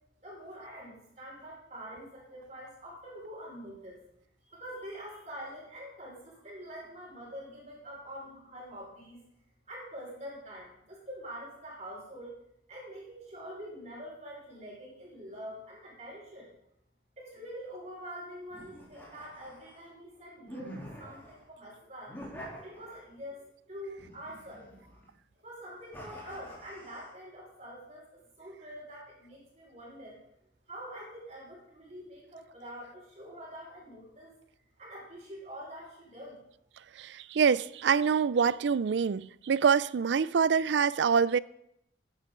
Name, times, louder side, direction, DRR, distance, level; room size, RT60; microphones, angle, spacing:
voice 1, 0.2-4.0 4.4-9.2 9.7-12.3 12.7-16.5 17.2-22.2 22.6-25.0 25.4-30.2 30.7-34.3 34.8-36.4, equal, 40° right, 5.3 m, -45 dB
sound 1, 18.5-19.9 20.5-21.4 22.1-23.2 24.0-25.1 25.9-27.1, equal, 10° left, 3.3 m, -47 dB
voice 2, 37.0-41.4, right 6 dB, 80° right, 0.4 m, -25 dB
15.0 x 10.0 x 3.8 m
head